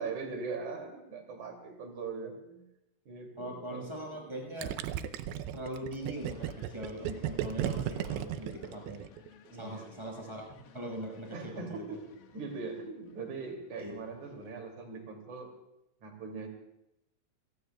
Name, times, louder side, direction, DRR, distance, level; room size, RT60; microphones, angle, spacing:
voice 1, 0.0-2.6 3.0-3.9 9.5-9.9 11.3-12.0 12.3-15.5 16.0-16.5, right 4 dB, 45° right, 3 dB, 3.3 m, -40 dB
voice 2, 3.4-4.7 5.5-9.0 9.5-12.0 13.7-13.9, right 1 dB, 5° right, 0 dB, 4.9 m, -41 dB
Gurgling, 4.6-9.3, right 11 dB, 85° right, 2.4 m, -35 dB
sound 1, 6.0-14.6, left 7 dB, 85° left, 4.2 m, -58 dB
28.5 x 19.0 x 2.3 m, 0.90 s
omnidirectional pair, 5.8 m